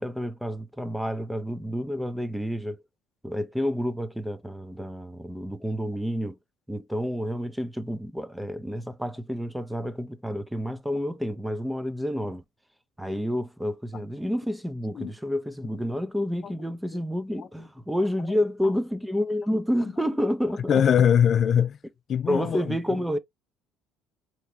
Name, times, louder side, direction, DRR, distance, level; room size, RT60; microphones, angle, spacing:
voice 1, 0.0-2.8 3.2-6.4 6.7-12.4 13.0-20.7 22.3-23.2, equal, 5° right, 0.6 m, -29 dB
voice 2, 20.7-21.8 22.1-22.8, left 8 dB, 50° left, 0.3 m, -21 dB
3.6 x 3.0 x 2.7 m
hypercardioid pair, 60°, 0 cm